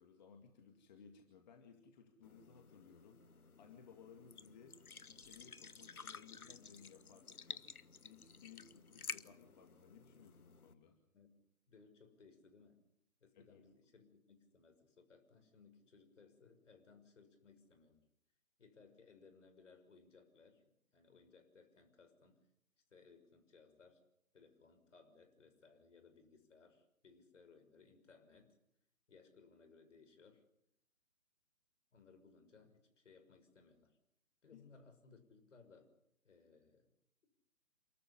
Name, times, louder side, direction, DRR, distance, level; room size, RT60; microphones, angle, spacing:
voice 1, 0.0-7.6 8.0-11.0 13.3-13.6 34.5-34.6, left 6 dB, 30° left, 5 dB, 2.3 m, -61 dB
sound 1, 2.2-10.7, left 5 dB, 90° left, 1.2 m, -53 dB
voice 2, 11.7-12.8 13.2-18.0 18.6-22.4 22.9-24.0 24.3-28.6 29.1-30.4 31.9-34.0 34.4-35.9 36.2-36.9 37.2-37.3, left 4 dB, 55° left, 8 dB, 6.2 m, -64 dB
28.5 x 13.5 x 10.0 m, 0.76 s
figure-of-eight pair, 155°, 42 cm